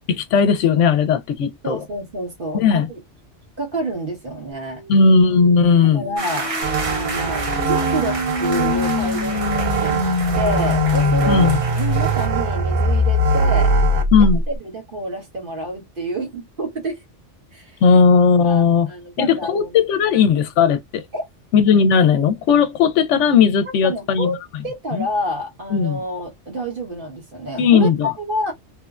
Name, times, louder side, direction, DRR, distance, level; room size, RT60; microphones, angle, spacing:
voice 1, 0.1-1.8 2.5-2.9 4.9-6.0 11.3-11.6 14.1-14.4 17.8-18.9 19.2-21.0 21.5-24.3 24.9-25.1 25.7-26.0 27.6-28.1, left 6 dB, 80° left, 0.9 m, -16 dB
voice 2, 1.6-3.0 3.6-4.8 5.8-6.5 6.8-10.0 10.4-13.7 14.2-17.0 17.5-17.8 18.5-19.8 21.1-21.2 23.8-24.4 24.6-28.5, right 1 dB, 50° right, 1.3 m, -28 dB
sound 1, 4.5-14.6, left 2 dB, 60° left, 1.0 m, -23 dB
sound 2, 6.2-12.3, right 3 dB, 35° right, 0.7 m, -31 dB
sound 3, 6.6-14.0, right 5 dB, 75° right, 0.9 m, -24 dB
3.2 x 2.1 x 2.4 m
omnidirectional pair, 1.2 m